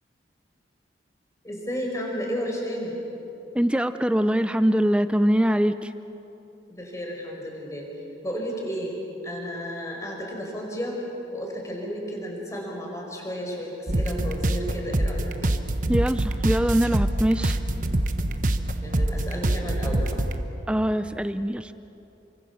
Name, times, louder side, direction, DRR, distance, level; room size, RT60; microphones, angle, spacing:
voice 1, 1.4-3.0 6.7-7.9 8.2-9.0 9.2-11.0 11.3-15.3 18.8-20.2, equal, 15° left, 0 dB, 4.9 m, -32 dB
voice 2, 3.5-5.9 15.9-17.5 20.7-21.7, equal, 5° right, 11 dB, 0.5 m, -23 dB
sound 1, 13.9-20.4, right 1 dB, 45° right, 1.2 m, -25 dB
29.0 x 24.5 x 7.2 m, 3.0 s
head